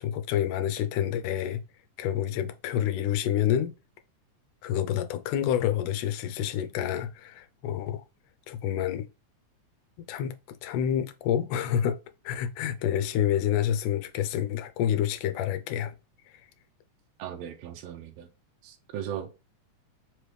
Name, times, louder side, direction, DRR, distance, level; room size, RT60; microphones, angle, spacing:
voice 1, 0.0-1.6 2.0-3.7 4.6-8.0 8.5-9.1 10.0-12.0 12.3-15.9, left 10 dB, 90° left, 2.2 m, -28 dB
voice 2, 17.2-18.3 18.6-19.4, right 9 dB, 80° right, 1.6 m, -38 dB
5.0 x 3.1 x 3.3 m
omnidirectional pair, 3.6 m